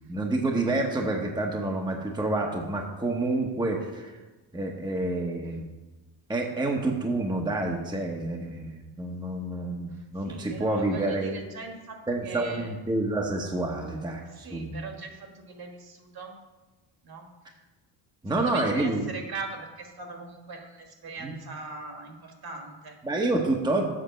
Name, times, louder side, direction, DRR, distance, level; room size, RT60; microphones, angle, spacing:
voice 1, 0.1-4.2 4.5-5.6 6.3-11.4 12.1-14.8 18.2-19.0 21.2-21.3 23.0-23.8, right 2 dB, 10° right, 1 dB, 1.0 m, -28 dB
voice 2, 9.9-12.7 14.2-16.3 17.0-17.6 18.3-23.0, right 4 dB, 50° right, 4 dB, 1.8 m, -40 dB
7.7 x 5.8 x 6.6 m, 1.2 s
cardioid pair, 105°, 49 cm